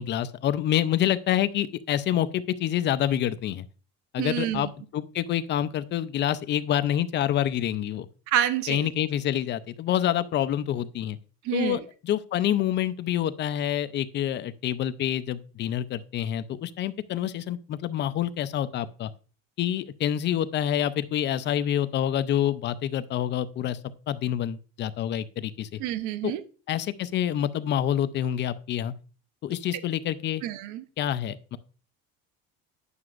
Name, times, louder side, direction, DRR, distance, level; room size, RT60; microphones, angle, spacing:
voice 1, 0.0-3.7 4.1-8.1 8.7-11.2 11.5-19.1 19.6-23.8 24.1-25.8 26.2-26.3 26.7-28.9 29.4-30.4 31.0-31.6, left 11 dB, 35° left, 13 dB, 0.4 m, -27 dB
voice 2, 4.2-4.7 8.3-8.9 11.5-11.8 25.8-26.4 30.4-30.8, right 11 dB, 60° right, 12 dB, 0.7 m, -28 dB
9.5 x 5.8 x 2.4 m, 0.38 s
cardioid pair, 145°, 33 cm